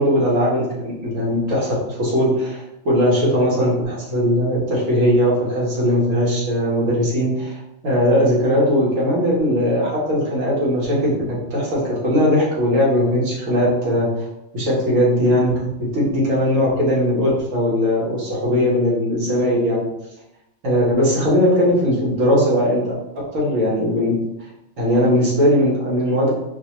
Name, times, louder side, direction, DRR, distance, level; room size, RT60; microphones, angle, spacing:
voice 1, 0.0-7.6 7.8-14.1 14.5-15.5 15.8-19.9 20.6-22.9 23.3-24.2 24.8-26.3, equal, 90° right, -6 dB, 1.6 m, -19 dB
4.7 x 2.3 x 3.0 m, 0.89 s
omnidirectional pair, 1.3 m